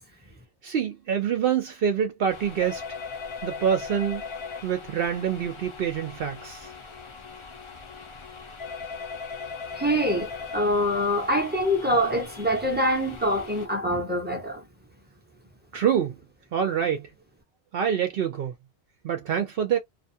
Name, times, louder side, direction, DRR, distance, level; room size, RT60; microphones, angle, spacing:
voice 1, 0.6-2.8 3.4-4.2 4.6-6.7 15.7-16.2 16.5-17.1 17.7-18.5 19.0-19.8, right 8 dB, 65° right, 0.7 m, -26 dB
sound 1, 2.3-13.7, left 5 dB, 35° left, 0.5 m, -39 dB
voice 2, 9.7-14.6, equal, 10° right, 0.6 m, -25 dB
2.6 x 2.2 x 2.6 m
omnidirectional pair, 1.1 m